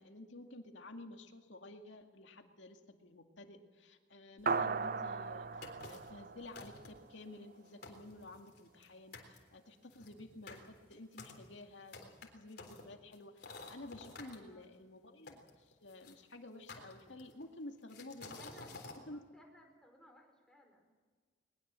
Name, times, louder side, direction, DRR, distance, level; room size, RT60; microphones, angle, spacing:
voice 1, 0.0-18.5 19.1-19.2, left 2 dB, 80° left, 4 dB, 2.2 m, -52 dB
sound 1, 4.5-7.2, right 5 dB, 50° right, 0.6 m, -37 dB
sound 2, 5.6-6.2 6.5-7.1 7.5-7.6 7.8-8.9 9.1-9.4 9.9-14.4 15.3-16.1 16.7-17.4 17.9-19.0, left 3 dB, 60° left, 3.7 m, -51 dB
voice 2, 14.2-14.6 18.4-20.9, equal, 5° left, 1 dB, 5.3 m, -62 dB
21.0 x 21.0 x 7.6 m, 1.4 s
head